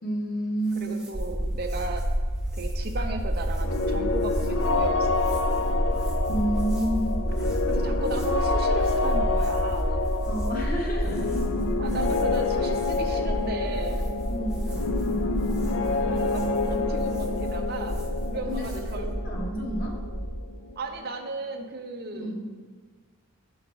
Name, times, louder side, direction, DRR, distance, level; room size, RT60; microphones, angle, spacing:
voice 1, 0.0-1.0 6.3-7.2 10.3-11.3 14.3-14.7 18.5-18.7 19.0-20.0 22.1-22.4, right 1 dB, 45° left, -2 dB, 1.2 m, -29 dB
sound 1, 0.6-19.0, right 1 dB, 5° right, 0.6 m, -51 dB
voice 2, 0.8-2.0 2.5-5.8 7.7-9.9 11.8-14.0 16.1-18.0 18.3-19.1 20.8-22.4, right 3 dB, 50° right, 4 dB, 0.5 m, -35 dB
sound 2, 1.1-20.4, equal, 25° left, 0.8 m, -29 dB
sound 3, 3.6-21.3, left 3 dB, 65° left, 0.4 m, -28 dB
7.1 x 3.9 x 4.6 m, 1.4 s
head